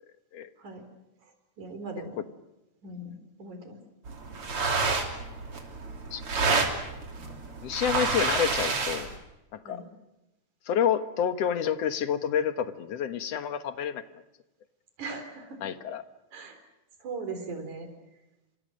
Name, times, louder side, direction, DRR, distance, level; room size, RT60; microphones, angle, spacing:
voice 1, 1.6-2.2 2.8-3.8 7.2-7.4 9.6-9.8 15.0-15.6 16.3-16.6 17.0-17.9, right 3 dB, 60° right, 7 dB, 5.3 m, -39 dB
sound 1, 4.1-9.2, right 4 dB, 40° right, 3.9 m, -29 dB
voice 2, 7.6-9.2 9.5-9.8 10.7-14.0 15.6-16.0, left 8 dB, 60° left, 10 dB, 2.1 m, -28 dB
30.0 x 26.5 x 6.5 m, 0.97 s
omnidirectional pair, 3.9 m